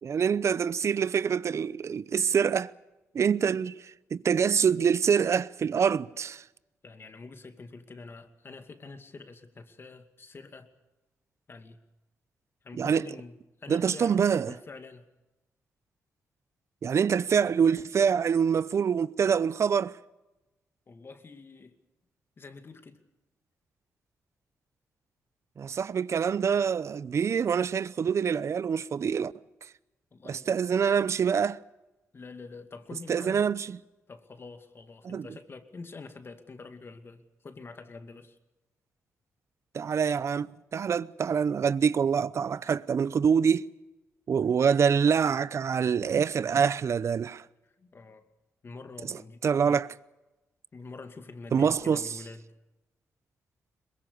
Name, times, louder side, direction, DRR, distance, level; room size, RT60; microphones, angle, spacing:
voice 1, 0.0-2.7 3.1-6.4 12.8-13.1 13.7-14.6 16.8-20.0 25.6-29.3 29.6-29.7 30.3-31.6 33.1-33.8 35.0-35.3 39.7-43.7 44.3-47.4 49.1-49.2 49.4-49.9 51.5-52.1, right 7 dB, 55° right, 0.7 m, -25 dB
voice 2, 6.8-10.7 11.5-11.8 12.6-13.3 13.6-15.1 20.9-21.8 22.4-23.0 30.1-30.6 32.1-33.5 34.1-38.4 47.6-48.3 48.6-49.4 49.7-49.8 50.7-52.4, left 4 dB, 45° left, 2.4 m, -46 dB
23.0 x 21.5 x 6.9 m
cardioid pair, 65°, 6 cm